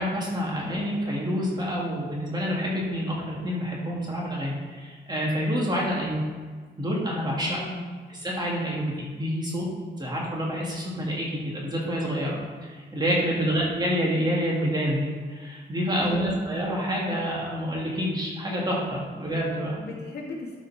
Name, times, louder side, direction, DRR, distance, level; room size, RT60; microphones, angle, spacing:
voice 1, 0.0-6.2 6.8-7.6 8.1-9.6 10.0-12.4 12.6-19.8, equal, 20° right, -4 dB, 2.6 m, -28 dB
voice 2, 0.5-0.9 7.4-8.0 13.3-13.7 16.0-16.5 19.1-19.2 19.7-20.6, left 3 dB, 60° left, -4 dB, 2.3 m, -38 dB
13.0 x 4.9 x 4.4 m, 1.5 s
wide cardioid pair, 120°, 19 cm